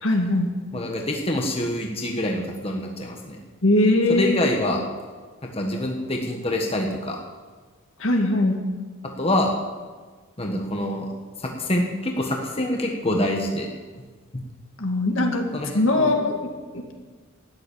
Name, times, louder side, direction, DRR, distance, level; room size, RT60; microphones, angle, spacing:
voice 1, 0.0-0.5 3.6-4.6 8.0-8.6 14.8-16.9, left 2 dB, 65° left, 3 dB, 2.1 m, -21 dB
voice 2, 0.7-3.4 4.1-4.8 5.4-7.2 9.2-9.5 10.4-11.1 11.4-13.7 15.5-16.2, left 1 dB, 25° left, 1 dB, 1.3 m, -26 dB
12.5 x 9.8 x 8.7 m, 1.4 s
head